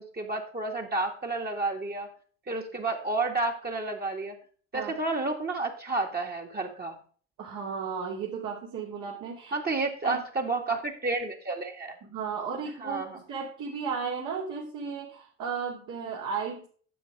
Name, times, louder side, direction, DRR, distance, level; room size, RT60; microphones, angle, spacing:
voice 1, 0.0-2.1 2.5-4.4 4.7-7.0 9.5-12.0 12.8-13.2, right 3 dB, 25° right, 1 dB, 2.3 m, -31 dB
voice 2, 7.4-9.6 10.0-10.2 12.0-16.7, right 6 dB, 50° right, -3 dB, 3.1 m, -34 dB
12.5 x 7.7 x 3.7 m, 0.44 s
hypercardioid pair, 60°, 38 cm